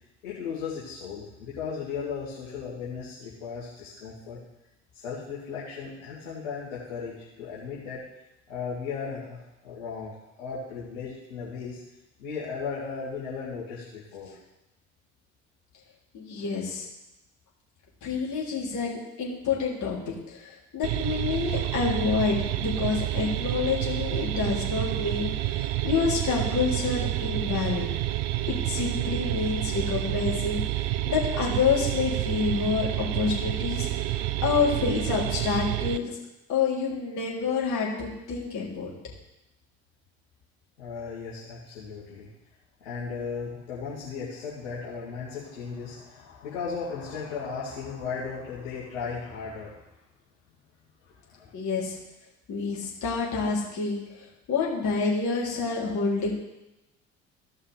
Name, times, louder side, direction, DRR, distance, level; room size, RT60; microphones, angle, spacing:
voice 1, 0.2-4.4 4.9-8.0 8.5-11.8 12.2-14.4 40.8-42.3 42.8-49.8 51.0-51.5, left 5 dB, 70° left, -8 dB, 2.4 m, -36 dB
voice 2, 16.1-16.9 18.0-27.9 28.5-36.1 36.5-38.9 51.5-52.0 52.5-54.0 54.5-56.3, left 5 dB, 45° left, -4 dB, 3.4 m, -28 dB
sound 1, 20.8-36.0, right 15 dB, 55° right, 0.6 m, -29 dB
15.0 x 5.6 x 5.0 m, 0.96 s
figure-of-eight pair, 55°, 39 cm